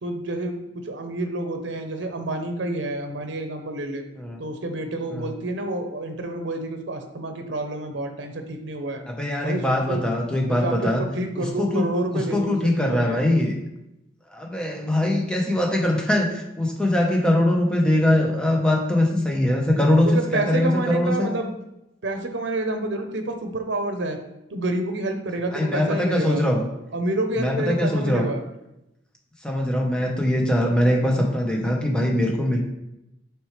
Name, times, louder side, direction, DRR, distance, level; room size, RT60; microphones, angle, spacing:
voice 1, 0.0-4.0 4.4-9.0 9.4-10.0 10.4-12.6 12.9-13.2 20.0-21.5 22.0-24.2 24.5-26.5 26.9-28.4, right 1 dB, 70° right, 6 dB, 0.8 m, -28 dB
voice 2, 9.1-11.0 11.4-11.9 12.1-13.5 14.3-21.3 25.5-26.7 27.4-28.3 29.4-32.6, left 1 dB, 5° left, 0 dB, 1.0 m, -22 dB
8.0 x 4.7 x 3.3 m, 0.88 s
head